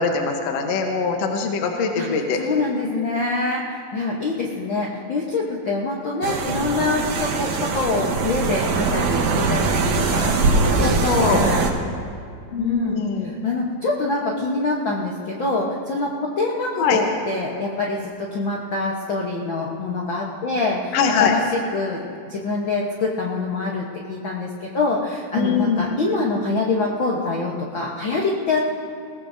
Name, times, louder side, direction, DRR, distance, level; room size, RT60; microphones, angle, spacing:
voice 1, 0.0-2.4 10.8-11.4 12.5-13.4 16.8-17.0 20.9-21.4 25.3-25.9, left 6 dB, 65° left, 3 dB, 1.8 m, -22 dB
voice 2, 1.9-10.4 10.6-11.7 12.6-22.0 22.3-28.6, left 3 dB, 85° left, -3 dB, 1.0 m, -25 dB
sound 1, 6.2-11.7, right 4 dB, 65° right, 2.1 m, -22 dB
21.0 x 18.5 x 2.7 m, 2.4 s
omnidirectional pair, 4.0 m